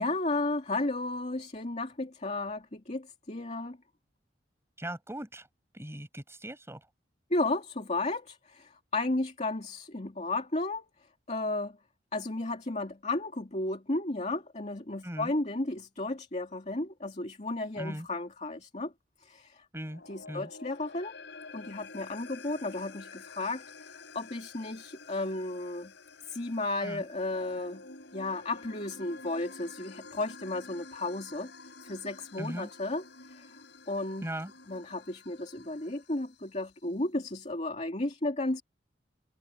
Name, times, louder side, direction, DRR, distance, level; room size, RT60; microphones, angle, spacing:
voice 1, 0.0-3.8 7.3-10.8 11.3-11.8 12.1-18.9 19.2-19.6 20.1-21.2 21.5-25.9 26.3-27.8 28.1-31.5 31.8-33.0 33.3-33.6 33.9-34.3 34.7-38.6, left 2 dB, 40° left, 2.4 m, -33 dB
voice 2, 4.8-5.5 5.7-6.9 15.0-15.3 17.8-18.1 19.7-20.0 20.3-20.5 26.8-27.0 32.4-32.7 34.2-34.5, right 1 dB, 15° right, 7.4 m, -39 dB
sound 1, 19.8-36.3, left 4 dB, 70° left, 7.1 m, -50 dB
head